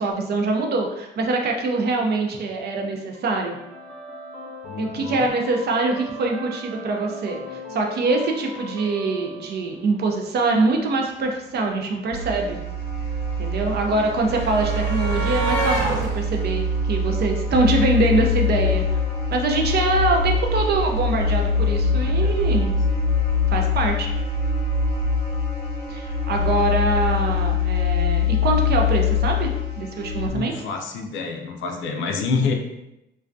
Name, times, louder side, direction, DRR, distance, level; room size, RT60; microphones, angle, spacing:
voice 1, 0.0-3.6 4.8-12.6 13.4-18.8 19.3-22.7 23.5-24.1 25.9-29.5 29.8-30.5, right 3 dB, 55° right, 2 dB, 0.5 m, -24 dB
sound 1, 3.1-10.1, left 1 dB, 5° left, 0.7 m, -38 dB
voice 2, 4.6-5.3 22.0-22.8 26.3-26.5 30.3-32.5, left 4 dB, 75° left, 3 dB, 0.4 m, -28 dB
sound 2, 11.5-11.6 11.8-17.9 19.1-19.3 19.5-19.7, right 2 dB, 85° right, 0.9 m, -30 dB
sound 3, 12.1-30.3, left 4 dB, 30° left, 0.8 m, -23 dB
2.3 x 2.2 x 2.5 m, 0.88 s
cardioid pair, 90°, 20 cm